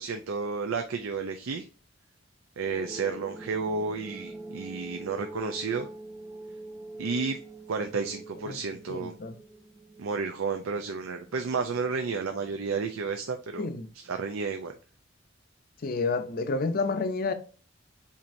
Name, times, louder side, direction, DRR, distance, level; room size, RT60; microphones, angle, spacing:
voice 1, 0.0-1.7 2.6-5.9 7.0-7.4 7.7-9.1 10.0-13.7 13.9-14.7, right 4 dB, 85° right, 0.5 m, -31 dB
sound 1, 2.6-13.6, right 2 dB, 15° right, 0.4 m, -45 dB
voice 2, 8.9-9.4 13.6-13.9 15.8-17.3, left 3 dB, 45° left, 0.5 m, -29 dB
7.3 x 2.8 x 2.6 m
head